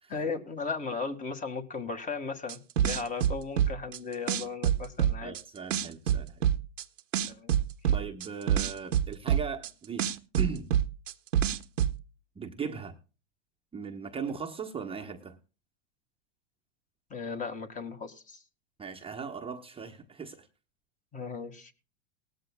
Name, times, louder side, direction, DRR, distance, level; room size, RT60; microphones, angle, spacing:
voice 1, 0.1-5.3 7.3-7.5 7.8-7.9 17.1-18.4 21.1-21.7, left 4 dB, 20° left, 1.8 m, -36 dB
sound 1, 2.5-4.0 4.3-5.4 5.7-6.8 7.1-9.7 10.0-11.9, right 10 dB, 90° right, 1.1 m, -26 dB
voice 2, 5.2-6.4 7.9-10.0 10.4-10.7 12.4-13.0 13.7-15.4 18.8-20.5, right 5 dB, 15° right, 1.0 m, -38 dB
19.0 x 14.0 x 2.2 m
hypercardioid pair, 120°, 37 cm